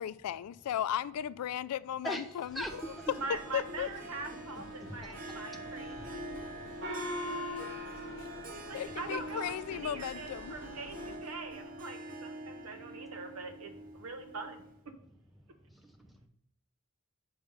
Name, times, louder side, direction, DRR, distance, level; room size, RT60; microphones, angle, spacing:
voice 1, 0.0-2.8 3.5-3.9 8.7-10.6, left 10 dB, 90° left, 0.3 m, -36 dB
voice 2, 2.0-2.7 4.3-6.1 6.4-6.6 15.7-16.3, equal, ahead, 0.6 m, -43 dB
sound 1, 2.5-11.2, left 2 dB, 55° left, 0.7 m, -51 dB
Harp, 2.7-14.9, right 1 dB, 40° right, 0.7 m, -45 dB
voice 3, 3.2-6.2 8.5-14.6, right 3 dB, 75° right, 0.8 m, -43 dB
Gong, 6.8-9.7, left 1 dB, 55° right, 2.0 m, -41 dB
5.1 x 4.7 x 5.5 m
head